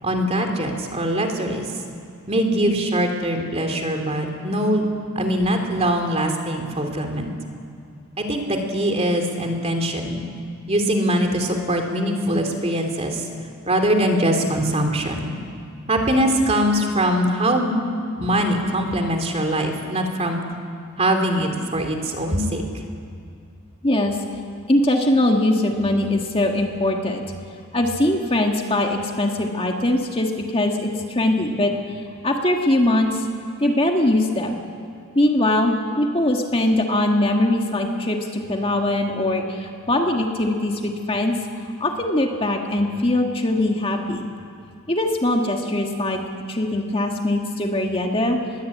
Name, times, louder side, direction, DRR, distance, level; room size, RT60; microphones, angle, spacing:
voice 1, 0.0-1.7 2.3-4.9 5.2-7.3 8.2-10.2 10.7-13.3 13.7-15.3 15.9-17.7 18.2-20.4 21.0-22.6, right 1 dB, 30° right, 4 dB, 2.9 m, -22 dB
voice 2, 23.8-24.2 24.7-27.2 27.7-32.0 32.2-33.3 33.6-34.6 35.2-41.3 41.8-44.2 44.9-46.2 46.5-48.4, left 1 dB, 25° left, 2 dB, 1.8 m, -21 dB
30.0 x 21.0 x 8.5 m, 2.4 s
head